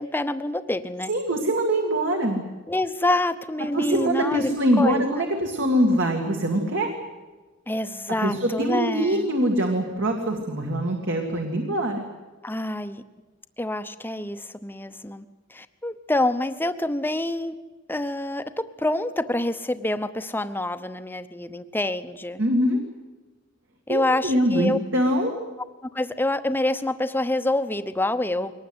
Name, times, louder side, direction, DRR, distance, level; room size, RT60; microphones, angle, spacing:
voice 1, 0.0-1.1 2.7-4.5 4.8-5.0 7.7-9.3 12.4-13.0 13.6-15.2 15.5-17.5 17.9-22.4 23.9-24.8 25.8-28.5, left 1 dB, 10° left, 10 dB, 0.9 m, -27 dB
voice 2, 1.1-2.4 3.7-6.9 8.2-12.0 22.4-22.8 23.9-25.4, right 1 dB, 65° right, 2 dB, 2.3 m, -23 dB
22.5 x 19.0 x 8.1 m, 1.3 s
head